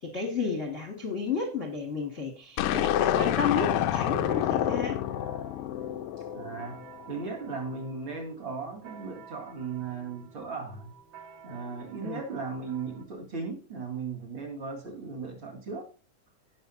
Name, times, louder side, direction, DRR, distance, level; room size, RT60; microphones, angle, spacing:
voice 1, 0.0-5.0 12.0-12.2, left 5 dB, 30° left, 2 dB, 1.4 m, -32 dB
sound 1, 2.6-7.0, left 11 dB, 80° left, 1.9 m, -28 dB
sound 2, 3.9-13.0, right 7 dB, 85° right, 4.7 m, -51 dB
voice 2, 6.2-11.0 11.4-15.9, right 4 dB, 40° right, 0 dB, 2.8 m, -37 dB
18.0 x 6.2 x 2.7 m, 0.35 s
omnidirectional pair, 3.8 m